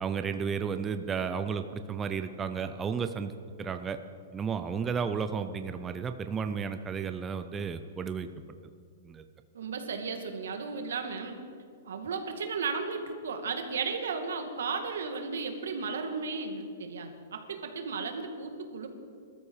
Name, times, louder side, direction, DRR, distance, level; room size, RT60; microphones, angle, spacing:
voice 1, 0.0-3.3 3.6-4.0 4.3-8.3 9.0-9.2, right 6 dB, 10° right, 9 dB, 0.4 m, -33 dB
voice 2, 9.5-11.4 11.8-18.9, right 4 dB, 85° right, 5 dB, 2.3 m, -34 dB
21.0 x 13.0 x 4.9 m, 2.2 s
hypercardioid pair, 175°, 0 cm